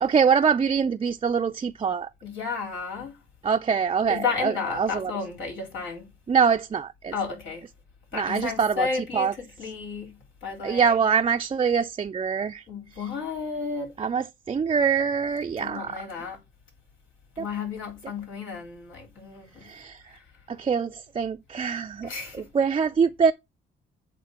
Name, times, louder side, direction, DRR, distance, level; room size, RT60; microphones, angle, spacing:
voice 1, 0.0-2.1 3.4-5.1 6.3-7.1 8.1-8.9 9.1-9.3 10.6-12.6 14.0-15.9 17.4-17.5 19.6-20.0 20.5-22.1 22.3-23.3, right 6 dB, 30° right, 0.5 m, -24 dB
voice 2, 2.2-3.2 4.1-6.1 7.1-7.6 8.1-11.0 12.7-13.9 15.6-16.4 17.4-19.7 20.1-20.2 22.0-22.5, left 5 dB, 75° left, 4.2 m, -33 dB
8.6 x 3.7 x 5.7 m
cardioid pair, 90°, 20 cm